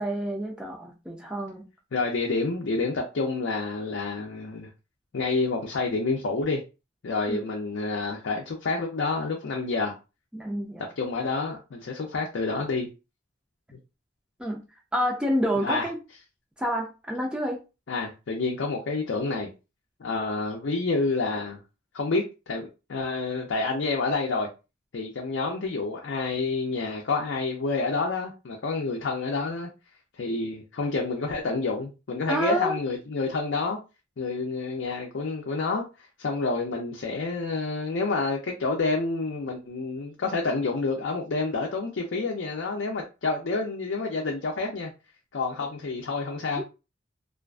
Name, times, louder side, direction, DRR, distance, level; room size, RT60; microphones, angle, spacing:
voice 1, 0.0-1.7 7.3-7.4 10.3-10.9 14.4-14.6 14.9-16.0 16.6-17.6 32.3-32.8 46.6-46.7, equal, 5° right, 0.4 m, -28 dB
voice 2, 1.9-4.7 5.1-6.6 7.0-10.0 11.0-12.9 15.6-15.9 17.9-19.5 20.0-21.6 21.9-24.5 24.9-29.7 30.1-33.8 34.2-44.9 45.3-46.6, left 3 dB, 70° left, 0.5 m, -28 dB
2.5 x 2.4 x 2.2 m
head